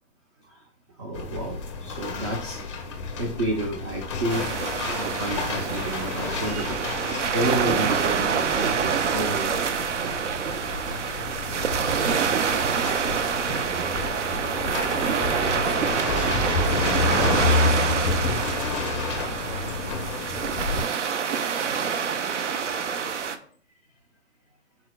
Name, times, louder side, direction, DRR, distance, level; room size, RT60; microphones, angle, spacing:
voice 1, 0.4-2.7 3.2-9.5, right 1 dB, 25° right, 1 dB, 0.4 m, -31 dB
sound 1, 1.1-20.8, left 4 dB, 25° left, 0.5 m, -30 dB
sound 2, 4.3-23.4, right 6 dB, 75° right, 0.6 m, -26 dB
voice 2, 11.4-13.7 14.3-18.9 19.5-20.2 20.7-23.6, left 2 dB, 5° right, -1 dB, 0.9 m, -47 dB
4.4 x 4.3 x 2.2 m, 0.39 s
hypercardioid pair, 140°, 36 cm